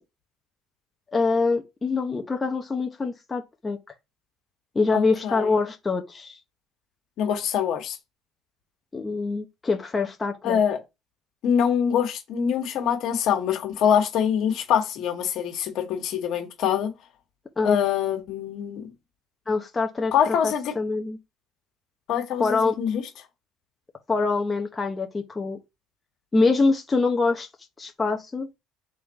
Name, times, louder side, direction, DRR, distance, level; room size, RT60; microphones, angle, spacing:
voice 1, 1.1-3.8 4.7-6.4 8.9-10.6 17.6-17.8 19.5-21.2 22.4-22.8 24.1-25.6 26.3-27.5 27.8-28.5, left 3 dB, 20° left, 0.9 m, -25 dB
voice 2, 4.9-5.5 7.2-8.0 10.4-10.8 11.4-16.9 17.6-18.9 20.1-20.7 22.1-23.0, left 8 dB, 65° left, 1.5 m, -24 dB
3.6 x 3.2 x 4.1 m
supercardioid pair, 85°, 0 cm